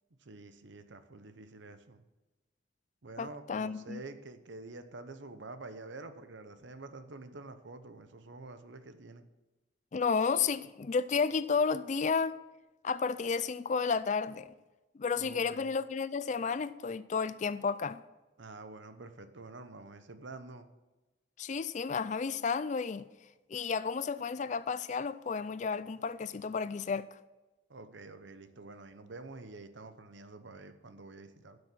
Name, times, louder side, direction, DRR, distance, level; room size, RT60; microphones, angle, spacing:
voice 1, 0.2-2.0 3.0-9.2 15.2-15.7 18.4-20.7 27.7-31.6, right 3 dB, 70° right, 0.8 m, -48 dB
voice 2, 3.2-4.0 9.9-12.4 12.8-14.5 14.9-18.0 21.4-23.1 23.5-27.1, left 5 dB, 40° left, 0.3 m, -32 dB
12.0 x 6.4 x 5.8 m
head